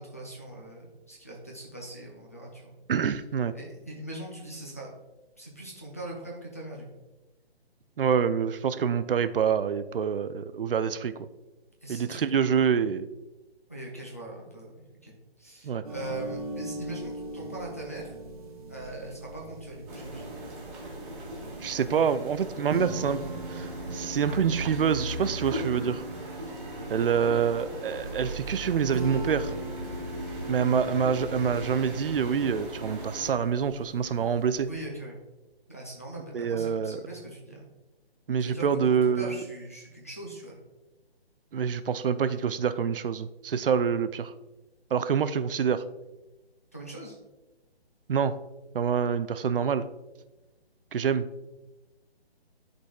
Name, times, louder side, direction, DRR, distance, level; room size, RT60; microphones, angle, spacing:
voice 1, 0.0-2.7 3.5-4.9 5.4-7.0 11.8-12.2 13.7-18.2 18.7-20.4 26.5-26.6 34.7-35.2 35.7-37.6 38.4-40.6 46.7-47.2, right 1 dB, 15° left, -4 dB, 0.4 m, -41 dB
voice 2, 2.9-3.5 8.0-11.3 11.9-13.1 15.6-15.8 21.6-23.2 23.5-26.0 26.9-29.5 30.5-34.7 36.3-37.0 38.3-39.4 41.5-44.3 44.9-45.8 48.1-48.4 48.7-49.8 50.9-51.3, right 7 dB, 60° right, 13 dB, 0.5 m, -26 dB
sound 1, 15.8-34.8, right 2 dB, 35° right, 0.9 m, -41 dB
sound 2, 19.9-33.3, right 1 dB, 15° right, 1.4 m, -38 dB
11.5 x 4.0 x 2.3 m, 1.1 s
hypercardioid pair, 160°, 31 cm